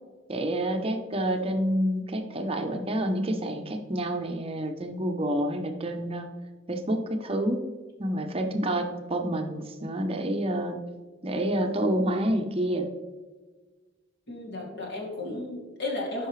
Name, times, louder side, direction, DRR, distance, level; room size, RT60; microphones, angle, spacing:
voice 1, 0.3-6.3 6.7-7.7 8.0-10.8 11.2-12.9, right 1 dB, 30° right, 5 dB, 0.7 m, -28 dB
voice 2, 14.3-16.3, left 2 dB, 60° left, -3 dB, 2.5 m, -34 dB
12.5 x 5.7 x 3.2 m, 1.3 s
head